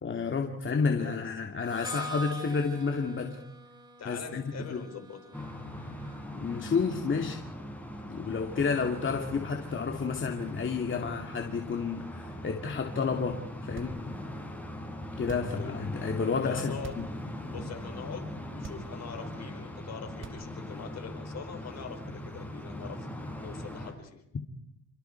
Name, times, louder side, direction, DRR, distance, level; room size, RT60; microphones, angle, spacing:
voice 1, 0.0-3.4 4.1-4.8 6.3-7.4 8.1-13.4 13.6-14.1 15.2-17.1, left 5 dB, 40° left, 3 dB, 2.6 m, -30 dB
voice 2, 1.0-1.3 4.0-5.4 15.5-15.8 16.4-17.0 17.5-24.2, left 6 dB, 60° left, 5 dB, 5.0 m, -43 dB
Harmonica, 1.6-7.4, right 2 dB, 15° right, 4.7 m, -45 dB
sound 1, 5.3-23.9, left 1 dB, 5° left, 6.8 m, -41 dB
sound 2, 13.7-14.3 15.2-15.7 16.7-17.2 17.6-17.7 18.5-19.2 20.1-20.8, right 5 dB, 40° right, 3.1 m, -46 dB
28.5 x 25.5 x 4.7 m, 0.80 s
cardioid pair, 90°, 30 cm